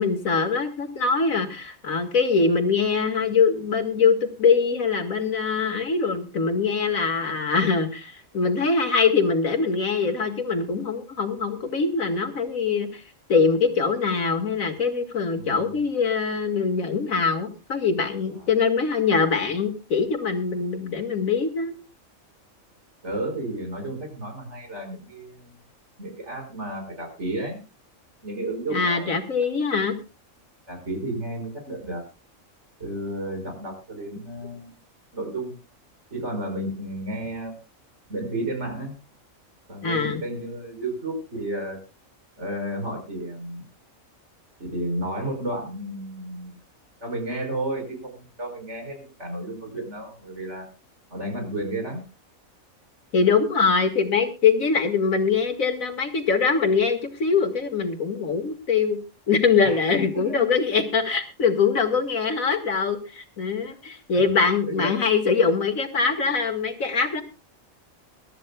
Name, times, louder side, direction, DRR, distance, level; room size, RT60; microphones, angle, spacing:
voice 1, 0.0-13.0 13.3-21.7 28.7-30.0 39.8-40.2 53.1-59.0 59.3-67.2, left 5 dB, 85° left, 6 dB, 2.3 m, -23 dB
voice 2, 15.4-15.7 23.0-25.5 26.0-27.6 28.2-29.2 30.7-32.0 32.8-34.7 35.1-35.6 36.1-37.6 38.1-38.9 39.7-41.8 42.4-43.6 44.6-46.6 47.0-50.7 51.1-52.0 59.6-60.5 64.7-65.0, right 1 dB, 55° right, 3 dB, 5.5 m, -32 dB
23.0 x 13.0 x 2.3 m, 0.29 s
omnidirectional pair, 1.4 m